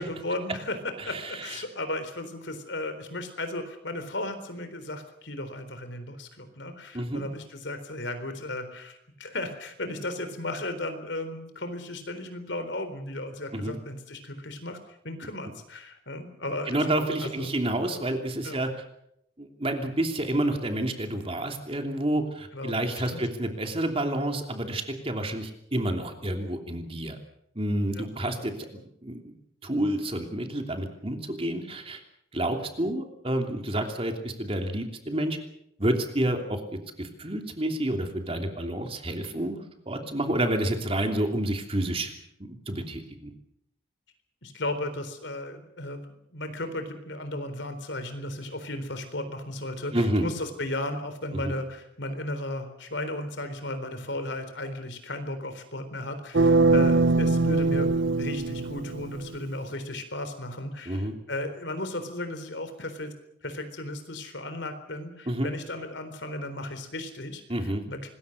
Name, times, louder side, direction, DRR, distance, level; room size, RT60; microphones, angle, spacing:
voice 1, 0.0-14.8 15.0-16.9 17.2-17.6 18.4-18.6 22.5-23.2 27.9-28.0 44.4-46.0 46.3-63.1 63.4-68.1, left 1 dB, 70° left, 9 dB, 3.9 m, -35 dB
voice 2, 1.1-1.6 6.9-7.3 13.5-13.8 16.7-18.7 19.4-27.2 27.5-29.3 29.6-32.0 32.3-35.4 35.8-42.1 42.4-43.3 49.9-50.3 51.3-51.5 60.9-61.1 65.3-65.5 67.5-67.8, right 1 dB, 30° right, 4 dB, 3.0 m, -29 dB
sound 1, 56.3-59.3, right 3 dB, 75° right, 0.8 m, -22 dB
25.5 x 21.0 x 6.6 m, 0.76 s
head